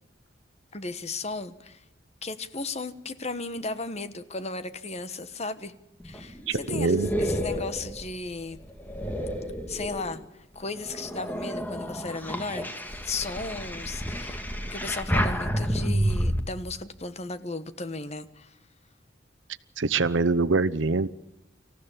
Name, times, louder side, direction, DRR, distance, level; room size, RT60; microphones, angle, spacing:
voice 1, 0.7-1.8 2.2-5.7 6.0-8.6 9.7-12.7 13.0-18.6, left 3 dB, 35° left, 12 dB, 1.3 m, -35 dB
sound 1, 6.0-10.2 10.8-16.4, equal, 10° left, 2.0 m, -30 dB
voice 2, 6.5-7.1 19.8-21.1, right 3 dB, 75° right, 14 dB, 0.9 m, -24 dB
26.0 x 15.0 x 7.4 m, 0.92 s
head